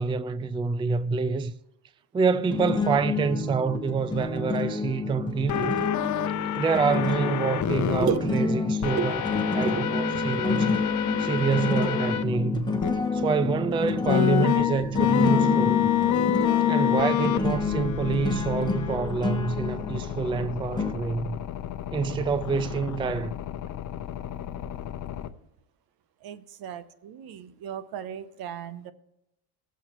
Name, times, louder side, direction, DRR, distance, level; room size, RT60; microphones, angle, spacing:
voice 1, 0.0-1.5 2.1-5.8 6.6-9.2 9.5-10.8 11.2-12.7 13.1-15.9 16.7-21.4 21.9-23.4, right 5 dB, 15° right, 0.3 m, -27 dB
sound 1, 2.5-20.9, left 3 dB, 10° left, 1.1 m, -29 dB
sound 2, 5.5-8.1 8.8-12.2 12.8-12.9 14.1-25.3, left 11 dB, 50° left, 0.8 m, -28 dB
voice 2, 26.2-28.9, right 9 dB, 70° right, 0.9 m, -33 dB
20.0 x 7.2 x 3.0 m
cardioid pair, 110°, 37 cm